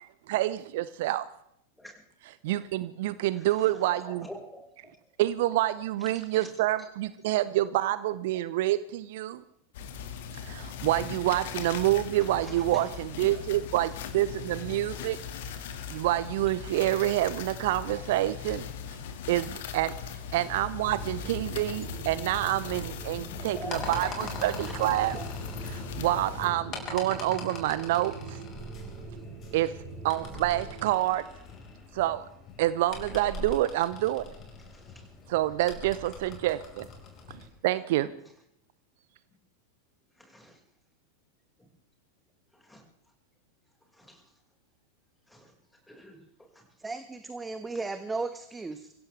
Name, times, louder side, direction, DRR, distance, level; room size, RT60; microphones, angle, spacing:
voice 1, 0.3-1.3 2.4-4.3 5.2-9.4 10.4-15.2 15.9-18.7 19.3-19.9 20.3-25.2 25.7-28.4 29.5-29.7 30.0-31.3 31.9-32.2 32.6-34.2 35.3-36.9 37.6-38.1, right 15 dB, 50° right, 16 dB, 0.7 m, -27 dB
voice 2, 3.0-3.7 4.0-4.9 6.0-6.5 12.4-12.9 23.5-23.9 24.6-24.7 25.0-25.3 29.1-29.2 34.7-35.1 40.2-40.6 42.5-42.8 43.9-44.2 45.3-45.5 45.9-46.6, left 1 dB, 5° left, 1 dB, 5.4 m, -47 dB
sound 1, 9.7-26.5, left 7 dB, 55° left, 2.0 m, -39 dB
sound 2, 20.7-31.0, right 4 dB, 30° right, 4.5 m, -43 dB
sound 3, 22.6-37.5, left 3 dB, 30° left, 5.1 m, -43 dB
voice 3, 46.8-48.9, right 3 dB, 10° right, 10 dB, 1.2 m, -35 dB
25.5 x 16.0 x 3.4 m, 0.74 s
figure-of-eight pair, 90°, 0 cm